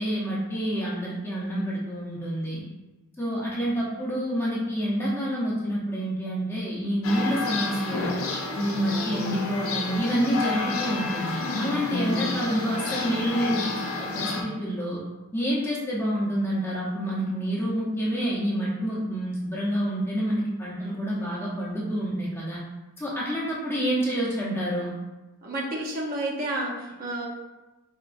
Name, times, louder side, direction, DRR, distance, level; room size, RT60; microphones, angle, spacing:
voice 1, 0.0-2.6 3.2-8.1 8.5-13.7 14.0-15.0 15.3-22.6 23.0-24.9, equal, 10° left, -6 dB, 0.7 m, -28 dB
sound 1, 7.0-14.4, left 3 dB, 65° left, 0.6 m, -30 dB
voice 2, 25.4-27.3, right 1 dB, 40° right, -3 dB, 0.7 m, -30 dB
4.5 x 2.9 x 2.5 m, 1.1 s
head